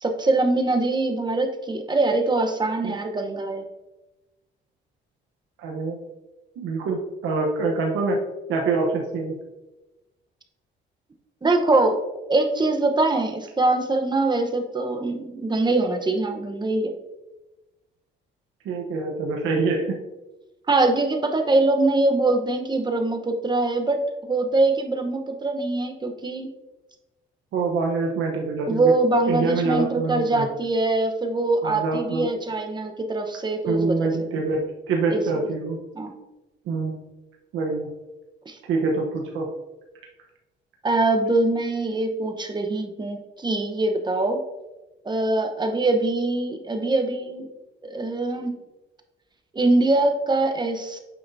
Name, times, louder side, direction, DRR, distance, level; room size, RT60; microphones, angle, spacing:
voice 1, 0.0-3.6 11.4-12.0 12.3-16.9 20.7-24.0 24.3-26.5 28.7-34.1 35.1-35.2 35.9-36.1 38.5-38.6 40.8-44.4 45.0-47.5 47.8-48.6 49.5-51.0, right 2 dB, 20° right, 5 dB, 0.9 m, -23 dB
voice 2, 5.6-6.0 6.6-8.2 8.5-9.3 18.6-20.0 27.5-28.9 29.3-30.5 31.6-32.3 33.6-34.6 34.9-35.8 36.7-37.0 37.5-37.9 38.7-39.5, right 3 dB, 85° right, 0 dB, 1.0 m, -25 dB
8.6 x 5.8 x 2.7 m, 1.1 s
cardioid pair, 90°, 20 cm